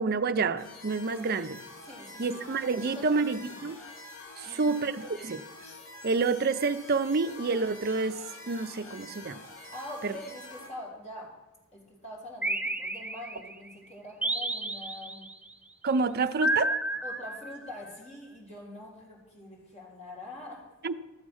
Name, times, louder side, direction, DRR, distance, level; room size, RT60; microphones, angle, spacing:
voice 1, 0.0-1.6 2.2-3.8 4.4-5.4 6.0-8.2 8.5-9.4 10.0-10.1 15.8-16.7 20.8-20.9, right 4 dB, 50° right, 9 dB, 0.6 m, -28 dB
sound 1, 0.6-10.7, left 2 dB, 75° left, 3.1 m, -47 dB
voice 2, 1.8-2.5 2.8-3.2 3.5-3.6 4.4-4.9 9.7-11.3 11.7-15.3 17.0-20.6, left 1 dB, 35° left, -3 dB, 3.8 m, -44 dB
sound 2, 12.4-13.5 14.2-15.3 16.4-17.9, right 1 dB, 5° right, 0.7 m, -31 dB
13.0 x 7.3 x 6.4 m, 1.1 s
head